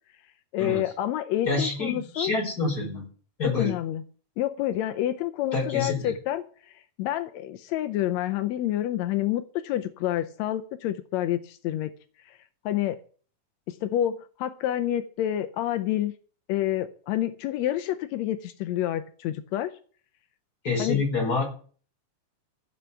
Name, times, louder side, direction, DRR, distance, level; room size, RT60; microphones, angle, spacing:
voice 1, 0.5-2.3 3.6-4.0 4.4-11.9 12.3-12.4 12.7-13.0 13.7-16.1 16.5-19.7 20.8-21.0, left 12 dB, 80° left, 9 dB, 1.6 m, -28 dB
voice 2, 1.5-3.1 3.4-3.7 5.5-6.1 20.6-21.4, left 3 dB, 25° left, 0 dB, 5.2 m, -27 dB
15.0 x 5.8 x 6.9 m, 0.43 s
omnidirectional pair, 3.9 m